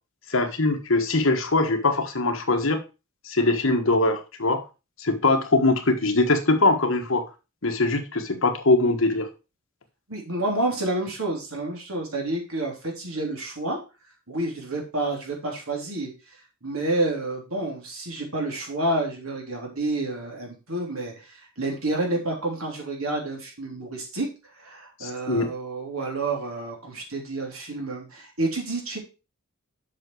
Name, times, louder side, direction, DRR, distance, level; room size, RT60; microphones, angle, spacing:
voice 1, 0.3-2.8 3.2-4.6 5.0-7.3 7.6-9.3 25.0-25.5, left 2 dB, 65° left, 6 dB, 1.4 m, -22 dB
voice 2, 10.1-13.8 14.3-16.1 16.6-24.3 24.5-29.0, right 2 dB, 85° right, 0 dB, 3.4 m, -29 dB
7.6 x 5.9 x 4.6 m, 0.30 s
head